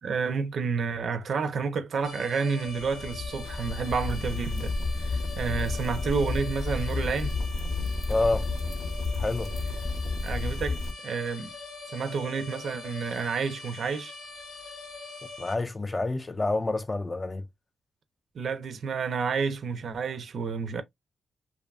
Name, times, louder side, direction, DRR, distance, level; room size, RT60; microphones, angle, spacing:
voice 1, 0.0-4.7 5.0-7.4 10.2-11.5 11.9-14.1 18.3-20.8, right 5 dB, 65° right, 0.4 m, -30 dB
sound 1, 2.0-15.6, left 3 dB, 85° left, 1.1 m, -43 dB
sound 2, 2.7-10.9, left 3 dB, 50° left, 0.7 m, -31 dB
voice 2, 8.1-8.5 9.2-9.5 15.4-17.5, left 2 dB, 25° left, 0.4 m, -28 dB
2.6 x 2.3 x 2.3 m
cardioid pair, 80°, 0 cm